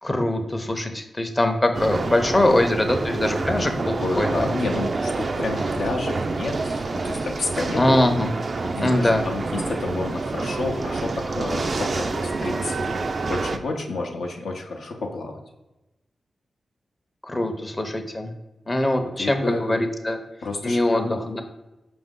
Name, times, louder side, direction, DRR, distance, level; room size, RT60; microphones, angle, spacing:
voice 1, 0.0-4.5 7.7-8.3 8.8-9.3 17.2-18.3 18.7-20.2 20.6-21.4, left 1 dB, 30° left, 6 dB, 0.6 m, -22 dB
sound 1, 1.7-13.6, right 3 dB, 55° right, 0.3 m, -27 dB
voice 2, 4.0-8.0 8.6-12.7 13.3-15.4 19.0-19.9 20.4-21.2, left 3 dB, 85° left, 0 dB, 0.5 m, -30 dB
4.9 x 2.6 x 3.6 m, 0.99 s
supercardioid pair, 40°, 0 cm